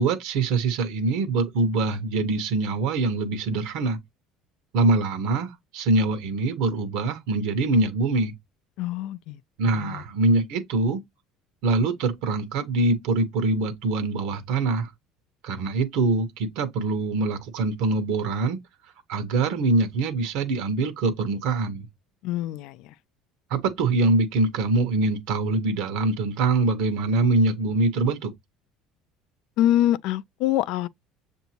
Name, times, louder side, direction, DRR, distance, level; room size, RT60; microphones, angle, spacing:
voice 1, 0.0-4.0 4.7-8.3 9.6-11.0 11.6-14.9 15.4-18.6 19.1-21.9 23.5-28.3, right 3 dB, 70° right, 0.9 m, -24 dB
voice 2, 8.8-9.4 9.7-10.0 22.2-22.8 29.6-30.9, left 13 dB, 65° left, 0.4 m, -24 dB
6.9 x 2.6 x 2.8 m
cardioid pair, 140°, 0 cm